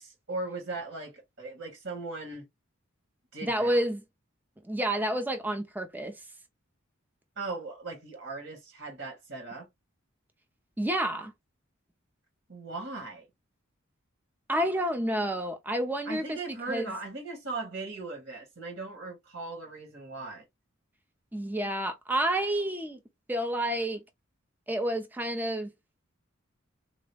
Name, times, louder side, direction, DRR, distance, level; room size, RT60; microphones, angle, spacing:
voice 1, 0.0-2.5 3.3-3.8 7.3-9.7 12.5-13.3 16.0-20.4, right 3 dB, 70° right, 1.7 m, -38 dB
voice 2, 3.4-4.0 4.7-6.2 10.8-11.3 14.5-16.4 16.7-16.9 21.3-23.0 23.3-24.0 24.7-25.7, right 1 dB, 10° right, 0.5 m, -29 dB
3.8 x 2.1 x 3.3 m
head